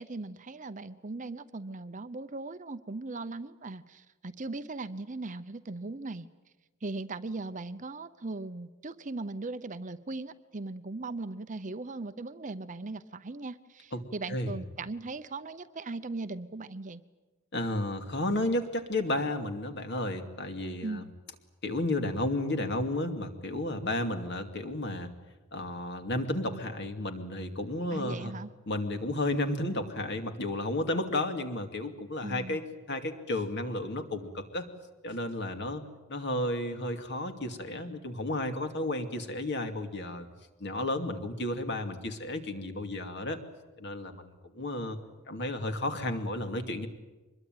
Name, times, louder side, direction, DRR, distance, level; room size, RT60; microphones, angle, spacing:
voice 1, 0.0-6.3 6.8-17.0 20.8-21.1 27.9-28.5 32.2-32.6, right 3 dB, 35° right, 12 dB, 0.8 m, -39 dB
voice 2, 17.5-21.0 21.6-25.1 25.5-28.3 28.7-34.7 35.0-35.8 36.1-40.3 40.6-43.4 43.8-45.0 45.3-46.9, left 1 dB, 50° left, 7 dB, 2.5 m, -32 dB
24.5 x 21.5 x 9.3 m, 1.2 s
head